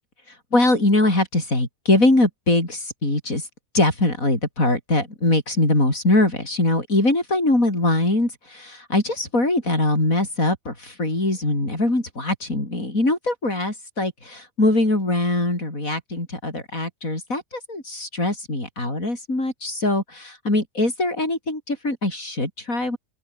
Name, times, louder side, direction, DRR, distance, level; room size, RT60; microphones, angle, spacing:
voice 1, 0.5-3.5 3.7-23.0, left 2 dB, 85° left, 7.4 m, -22 dB
open air
omnidirectional pair, 1.4 m